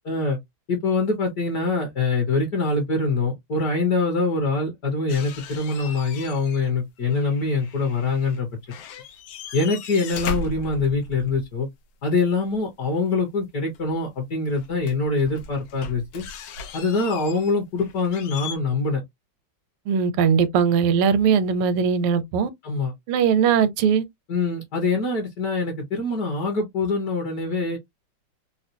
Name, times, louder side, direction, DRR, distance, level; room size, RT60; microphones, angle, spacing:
voice 1, 0.1-0.4 0.7-8.5 9.5-11.7 12.0-16.2 16.7-19.0 22.6-22.9 24.3-27.8, left 3 dB, 55° left, 1.3 m, -24 dB
sound 1, 5.1-6.7 7.0-8.4 8.7-11.5 13.8-13.9 14.5-18.6, left 4 dB, 80° left, 1.6 m, -37 dB
voice 2, 19.9-22.5 23.1-24.0, right 7 dB, 85° right, 1.5 m, -20 dB
4.2 x 2.1 x 2.6 m
omnidirectional pair, 2.4 m